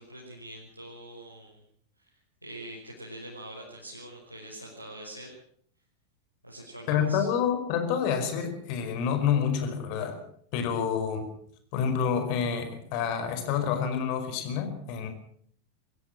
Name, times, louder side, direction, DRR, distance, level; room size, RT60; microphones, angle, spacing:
voice 1, 0.0-1.5 2.4-5.3 6.4-7.3, right 1 dB, 85° right, -4 dB, 6.0 m, -44 dB
voice 2, 6.9-10.2 10.5-11.2 11.7-15.1, left 7 dB, 45° left, 7 dB, 5.1 m, -28 dB
23.5 x 16.0 x 7.5 m, 0.62 s
figure-of-eight pair, 90°, 0 cm